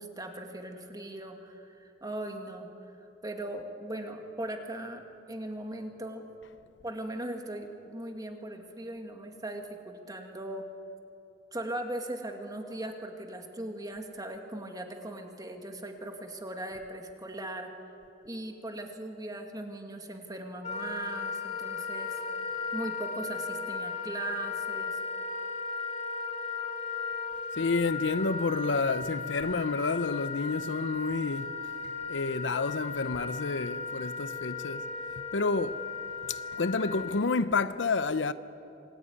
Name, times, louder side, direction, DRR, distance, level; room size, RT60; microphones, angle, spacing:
voice 1, 0.0-2.7 3.2-5.0 5.3-6.3 6.8-10.7 11.5-17.7 18.2-22.2 22.7-25.0, right 1 dB, 20° right, 2.3 m, -39 dB
Wind instrument woodwind instrument, 20.6-37.2, left 4 dB, 40° left, 3.1 m, -36 dB
voice 2, 27.5-35.9 36.3-38.3, left 4 dB, 70° left, 0.7 m, -30 dB
26.5 x 19.0 x 9.7 m
head